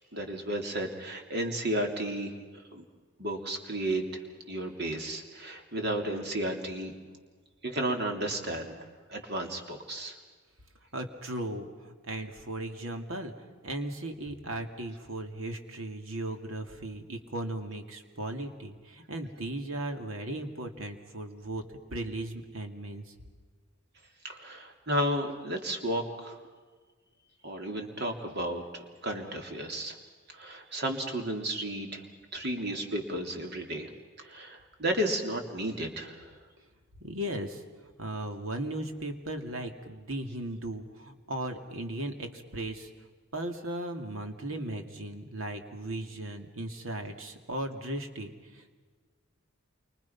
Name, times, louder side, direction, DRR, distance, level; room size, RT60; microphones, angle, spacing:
voice 1, 0.1-2.8 3.2-4.2 4.5-6.9 7.6-8.7 9.1-10.1 24.2-26.4 27.4-30.0 30.3-32.0 32.3-33.9 34.2-36.3, right 1 dB, 50° right, 3 dB, 3.1 m, -33 dB
voice 2, 10.9-13.3 13.6-21.6 21.9-23.1 37.0-37.6 38.0-42.9 43.3-48.8, right 1 dB, 75° right, 5 dB, 2.5 m, -37 dB
28.5 x 24.5 x 5.9 m, 1.4 s
head